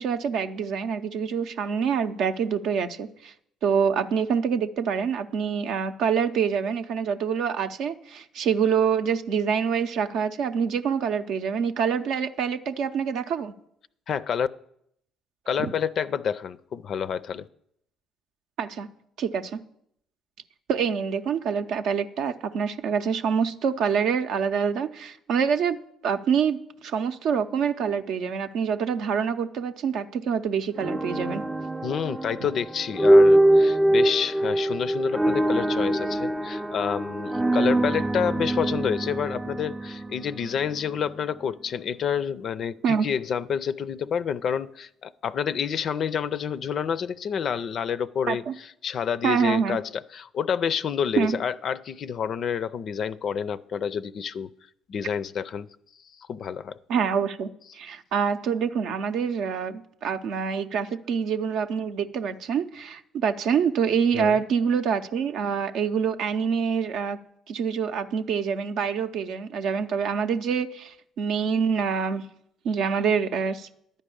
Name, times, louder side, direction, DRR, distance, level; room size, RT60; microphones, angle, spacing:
voice 1, 0.0-3.3 3.6-13.5 15.6-15.7 18.6-18.9 19.2-19.6 20.7-31.4 42.8-43.1 48.3-48.5 49.2-49.8 51.2-51.4 56.9-57.5 57.7-67.2 67.5-72.2 72.6-73.7, right 6 dB, 65° right, 0.6 m, -26 dB
voice 2, 14.1-14.5 15.5-17.5 31.8-54.5 54.9-55.7 56.2-56.8 64.1-64.4, left 7 dB, 55° left, 0.4 m, -28 dB
sound 1, 30.8-40.9, right 1 dB, 15° right, 0.4 m, -23 dB
11.0 x 5.3 x 8.5 m
hypercardioid pair, 50°, 0 cm